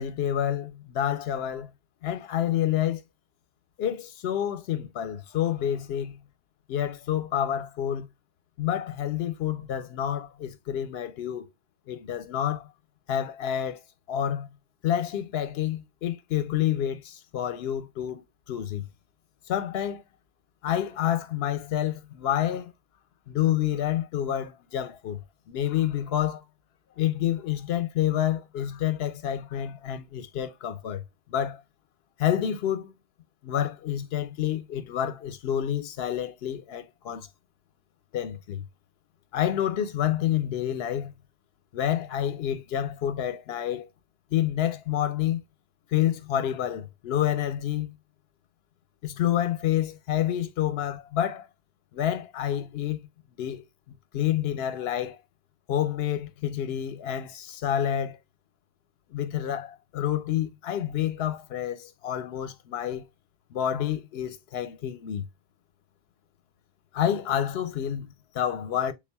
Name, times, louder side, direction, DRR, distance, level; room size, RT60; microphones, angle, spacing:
voice 1, 0.0-1.7 2.0-3.0 3.8-6.2 6.7-8.1 8.6-11.5 11.9-12.7 13.1-13.8 14.1-14.6 14.8-18.9 19.5-20.0 20.6-22.7 23.3-26.4 27.0-31.6 32.2-32.9 33.4-37.3 38.1-38.6 39.3-41.1 41.7-43.9 44.3-45.4 45.9-48.0 49.0-51.5 51.9-53.0 53.4-55.2 55.7-58.2 59.1-63.1 63.5-65.3 66.9-68.9, left 11 dB, 80° left, 0.8 m, -28 dB
3.5 x 2.3 x 3.3 m
omnidirectional pair, 1.0 m